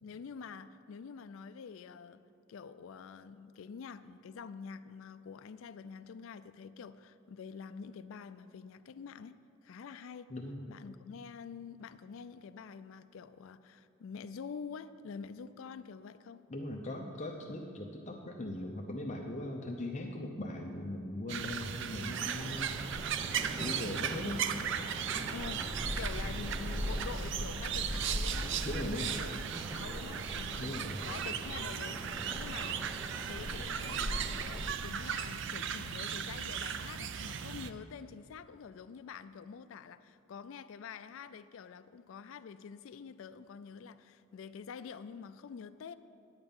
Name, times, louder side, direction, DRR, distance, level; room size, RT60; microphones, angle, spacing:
voice 1, 0.0-2.2 2.5-9.4 9.6-10.3 10.7-16.4 25.3-29.4 29.7-30.8 31.0-32.9 33.3-45.9, left 6 dB, 65° left, 11 dB, 0.3 m, -47 dB
voice 2, 10.3-10.6 16.5-23.0 23.6-24.4 28.6-29.1 30.6-31.0, left 1 dB, 35° left, 0 dB, 0.7 m, -39 dB
sound 1, 21.3-37.7, right 8 dB, 55° right, 0.4 m, -37 dB
sound 2, 22.1-34.7, equal, 15° right, 0.7 m, -41 dB
10.5 x 8.9 x 5.4 m, 2.5 s
head